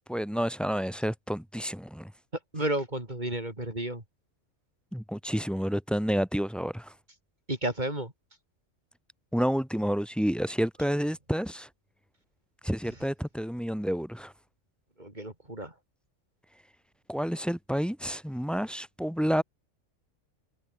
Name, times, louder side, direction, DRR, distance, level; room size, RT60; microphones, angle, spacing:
voice 1, 0.1-2.1 4.9-6.9 9.3-11.7 12.6-14.3 17.1-19.4, equal, ahead, 3.5 m, -29 dB
voice 2, 2.5-4.0 7.5-8.1 15.0-15.7, right 1 dB, 35° right, 4.8 m, -32 dB
omnidirectional pair, 1.3 m